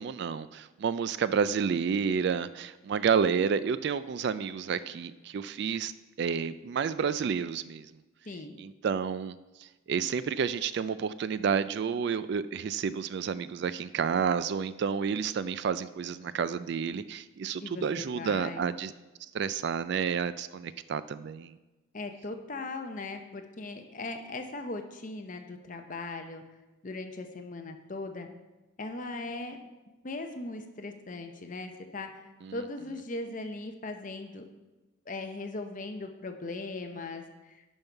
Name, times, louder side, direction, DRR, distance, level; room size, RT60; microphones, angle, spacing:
voice 1, 0.0-5.9 6.2-7.9 8.6-9.3 9.6-18.9 19.3-21.5 32.4-32.6, right 6 dB, 55° right, 15 dB, 0.3 m, -30 dB
voice 2, 8.3-8.6 17.6-18.7 21.9-26.4 26.8-28.3 28.8-29.6 30.0-32.2 32.5-34.4 35.1-37.6, left 2 dB, 40° left, 5 dB, 0.8 m, -39 dB
11.0 x 5.4 x 4.6 m, 1.1 s
head